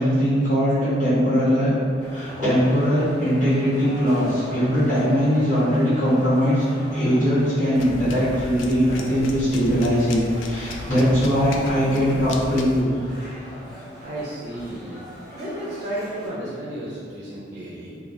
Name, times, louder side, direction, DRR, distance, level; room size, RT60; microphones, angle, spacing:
voice 1, 0.0-1.7 2.1-6.6 6.9-13.4, equal, 40° left, -14 dB, 1.4 m, -20 dB
sound 1, 2.0-16.3, equal, ahead, 1.4 m, -41 dB
sound 2, 7.7-12.8, left 2 dB, 80° left, 0.3 m, -35 dB
voice 2, 14.0-14.9 15.3-18.0, right 1 dB, 40° right, -6 dB, 0.5 m, -33 dB
3.4 x 2.3 x 2.6 m, 2.2 s
head